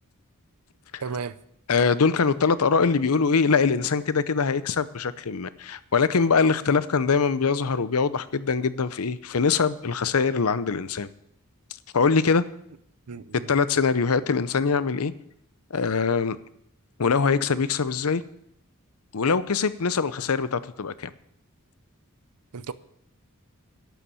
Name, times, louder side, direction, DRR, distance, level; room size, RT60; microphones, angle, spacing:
voice 1, 1.0-1.4 13.1-13.5 22.5-22.7, right 5 dB, 90° right, 0.7 m, -34 dB
voice 2, 1.7-11.1 11.9-12.4 13.5-15.1 15.7-16.4 17.0-18.2 19.1-21.1, left 5 dB, 75° left, 0.7 m, -23 dB
11.5 x 7.0 x 8.8 m
head